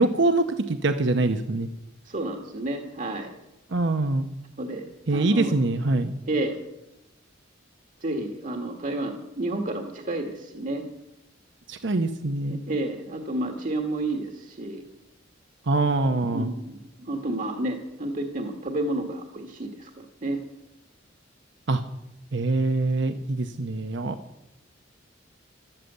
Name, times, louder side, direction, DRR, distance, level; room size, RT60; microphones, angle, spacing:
voice 1, 0.0-1.7 3.7-4.3 5.1-6.1 11.7-12.6 15.7-16.5 21.7-21.8 22.3-24.2, right 2 dB, 65° right, 8 dB, 0.9 m, -24 dB
voice 2, 2.0-3.3 4.6-5.5 6.3-6.6 8.0-10.9 12.5-14.8 16.3-20.4, right 1 dB, 45° right, 4 dB, 1.5 m, -30 dB
13.5 x 13.0 x 8.0 m, 0.90 s
head